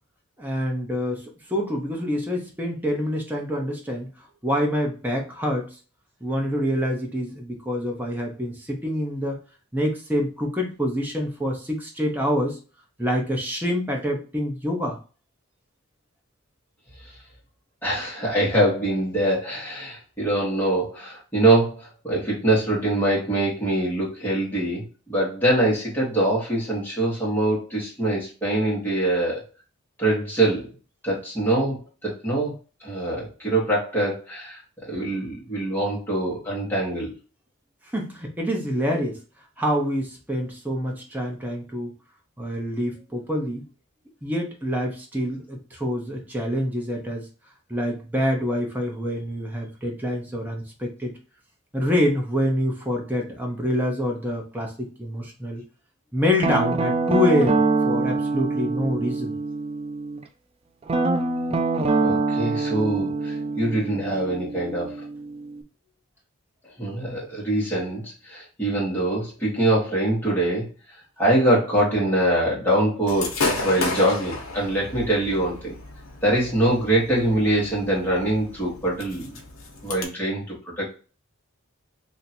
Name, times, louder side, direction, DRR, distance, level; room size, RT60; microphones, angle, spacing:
voice 1, 0.4-4.1 4.4-5.8 6.2-9.4 9.7-12.6 13.0-15.0 37.9-39.2 39.6-41.9 42.4-43.6 44.2-47.3 47.7-51.2 51.7-55.6 56.1-59.4, equal, 10° right, 0 dB, 0.8 m, -26 dB
voice 2, 17.8-29.4 30.0-30.7 31.0-32.5 32.8-37.1 62.0-65.0 66.8-70.7 71.2-75.8 76.2-79.4 79.8-80.9, right 1 dB, 10° left, -6 dB, 1.5 m, -24 dB
Guitar, 56.4-60.2 60.9-65.6, right 3 dB, 30° right, 0.4 m, -25 dB
Gunshot gunfire / Fireworks, 73.1-80.0, left 3 dB, 70° left, 1.0 m, -32 dB
2.9 x 2.6 x 4.3 m, 0.35 s
head